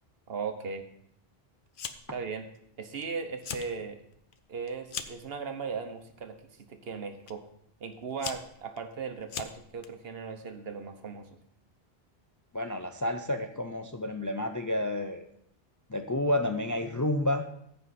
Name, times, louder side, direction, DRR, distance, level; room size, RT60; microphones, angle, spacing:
voice 1, 0.3-0.8 2.1-2.5 2.8-4.0 4.5-7.4 7.8-11.3, right 5 dB, 70° right, 7 dB, 1.2 m, -37 dB
Fire, 1.7-2.2 2.6-3.0 3.3-3.7 4.1-5.3 6.1-6.4 7.3-7.4 7.9-9.9, left 7 dB, 60° left, 0.8 m, -40 dB
voice 2, 12.5-15.3 15.9-17.4, left 1 dB, 30° left, 6 dB, 0.4 m, -30 dB
14.0 x 5.5 x 4.2 m, 0.72 s
omnidirectional pair, 1.1 m